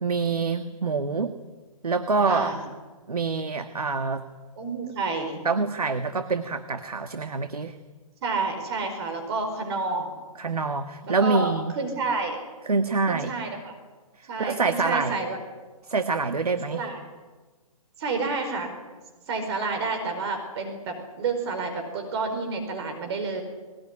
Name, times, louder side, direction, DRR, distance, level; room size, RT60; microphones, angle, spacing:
voice 1, 0.0-1.4 1.8-2.5 3.1-4.2 5.4-7.8 10.4-11.7 12.6-13.3 14.2-15.2 15.8-16.8, right 4 dB, 90° right, 9 dB, 1.6 m, -26 dB
voice 2, 2.2-2.6 4.6-5.4 8.2-10.1 11.2-12.4 13.1-13.8 14.3-15.4 16.7-17.0 18.0-18.7 19.3-23.4, right 3 dB, 45° right, 5 dB, 4.8 m, -29 dB
21.0 x 20.0 x 9.8 m, 1.3 s
hypercardioid pair, 140°, 19 cm